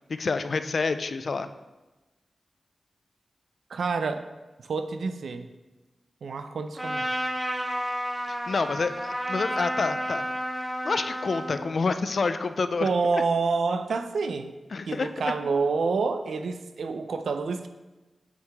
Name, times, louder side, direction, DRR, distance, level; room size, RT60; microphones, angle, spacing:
voice 1, 0.2-1.5 8.3-10.3 10.8-12.9 13.1-13.2 14.7-15.1, left 4 dB, 60° left, 10 dB, 0.4 m, -28 dB
voice 2, 3.7-4.3 4.6-5.5 6.2-7.1 12.8-14.6 14.9-17.7, right 4 dB, 90° right, 9 dB, 0.5 m, -28 dB
Trumpet, 6.8-11.7, equal, 10° right, 0.8 m, -31 dB
8.0 x 4.8 x 3.5 m, 1.1 s
wide cardioid pair, 100°, 0 cm